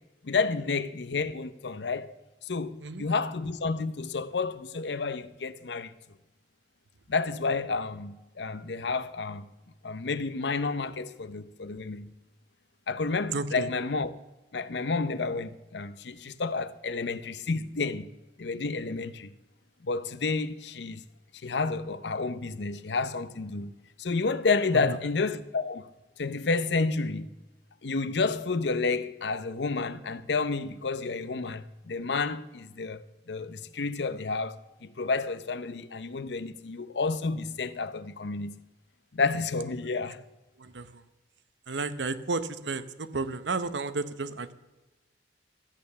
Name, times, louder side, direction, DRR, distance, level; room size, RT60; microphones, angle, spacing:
voice 1, 0.2-2.1 2.4-5.9 7.1-9.5 9.8-12.1 12.9-14.1 14.5-18.1 18.4-19.3 19.8-21.0 21.4-23.7 24.0-25.9 26.2-27.3 27.8-38.5 39.1-40.2, left 4 dB, 70° left, 0.7 m, -30 dB
voice 2, 13.3-13.7 24.7-25.0 40.6-41.0 41.7-44.5, right 3 dB, 90° right, 0.9 m, -32 dB
13.5 x 8.7 x 6.9 m
head